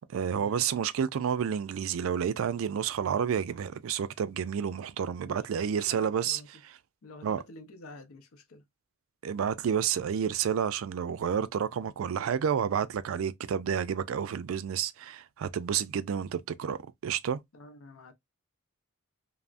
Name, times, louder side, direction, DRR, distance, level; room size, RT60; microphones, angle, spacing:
voice 1, 0.1-6.4 7.2-7.4 9.2-17.4, right 8 dB, 75° right, 0.3 m, -30 dB
voice 2, 5.2-6.5 7.0-8.6 17.5-18.1, left 2 dB, 85° left, 0.6 m, -49 dB
3.3 x 2.1 x 2.4 m
head